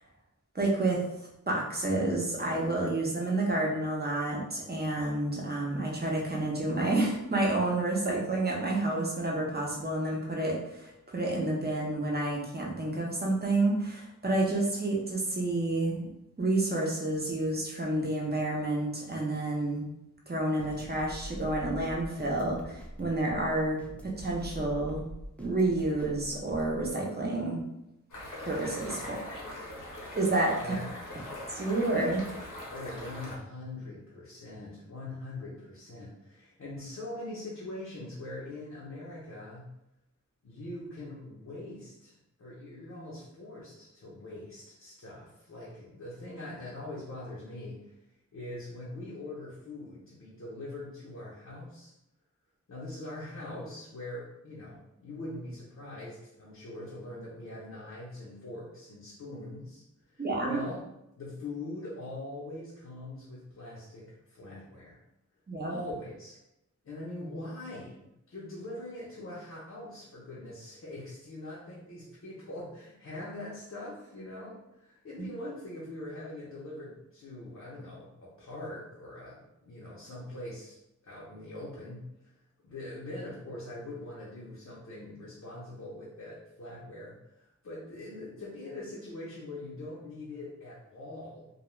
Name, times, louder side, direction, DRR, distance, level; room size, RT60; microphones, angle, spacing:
voice 1, 0.5-1.0 1.5-16.1 16.4-19.9 20.3-23.8 24.0-25.0 25.4-27.6 28.4-29.4 30.1-30.8 31.5-32.2 60.2-60.6 65.5-65.8, right 2 dB, 30° right, -2 dB, 0.7 m, -29 dB
sound 1, 20.6-26.9, equal, 5° left, 0.3 m, -44 dB
sound 2, 28.1-33.4, left 1 dB, 90° left, 0.9 m, -42 dB
voice 2, 30.6-30.9 32.7-39.7 40.4-48.0 48.3-51.9 52.7-60.9 61.2-65.0 65.7-66.4 66.8-68.0 68.3-80.8 81.0-82.3 82.6-91.5, left 2 dB, 60° left, -6 dB, 0.7 m, -42 dB
2.3 x 2.3 x 3.0 m, 0.86 s
wide cardioid pair, 70°, 30 cm